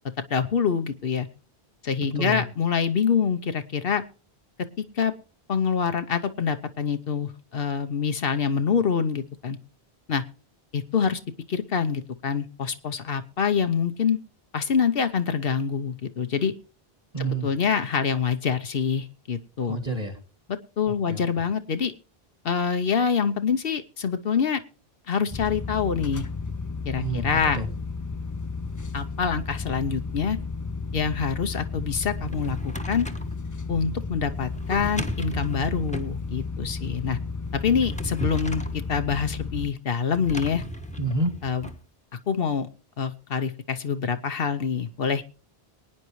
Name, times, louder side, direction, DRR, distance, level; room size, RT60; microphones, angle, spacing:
voice 1, 0.3-1.3 1.8-4.0 4.9-5.1 5.5-9.6 10.1-10.2 10.7-11.2 11.5-14.2 14.5-16.5 17.2-19.8 20.8-21.9 22.4-24.6 25.1-26.2 26.9-27.6 28.9-30.4 30.9-33.1 33.7-37.2 37.5-38.6 38.9-40.6 41.4-41.7 42.3-42.7 43.0-45.2, left 6 dB, 65° left, 9 dB, 1.0 m, -25 dB
voice 2, 17.1-17.5 19.7-20.2 21.1-21.2 27.0-27.7 41.0-41.3, right 2 dB, 40° right, 7 dB, 2.3 m, -28 dB
sound 1, 25.3-39.7, left 4 dB, 25° left, 0.5 m, -33 dB
Drawer open or close, 32.0-33.3 34.5-36.2 37.5-38.8 40.1-41.8, equal, 5° left, 1.0 m, -35 dB
23.0 x 9.6 x 3.1 m, 0.35 s
omnidirectional pair, 1.0 m